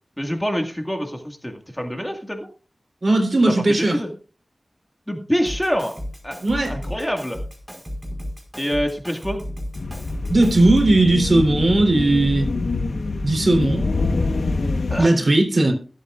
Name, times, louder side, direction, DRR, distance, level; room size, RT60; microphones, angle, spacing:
voice 1, 0.2-2.5 3.5-4.1 5.1-6.0 6.2-6.4 6.7-7.4 8.6-9.4 14.9-15.1, equal, 10° left, 1.9 m, -26 dB
voice 2, 3.0-4.0 6.4-6.7 10.3-12.5 13.2-13.9 15.0-15.7, right 2 dB, 55° right, 3.4 m, -17 dB
Drum kit, 5.5-11.1, equal, 10° right, 4.8 m, -34 dB
sound 1, 9.7-15.0, left 3 dB, 85° left, 1.1 m, -25 dB
21.5 x 8.4 x 2.5 m
cardioid pair, 45°, 0 cm